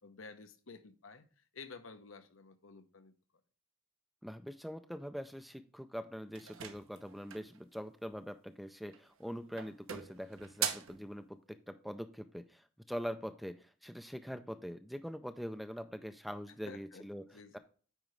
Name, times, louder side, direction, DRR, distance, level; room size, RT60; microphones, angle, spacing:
voice 1, 0.0-3.1 16.6-17.6, left 4 dB, 70° left, 0.9 m, -52 dB
voice 2, 4.2-17.2, equal, ahead, 0.4 m, -43 dB
sound 1, 6.3-7.6 8.8-9.2 9.6-11.0, right 9 dB, 75° right, 0.9 m, -40 dB
8.9 x 4.9 x 3.1 m
head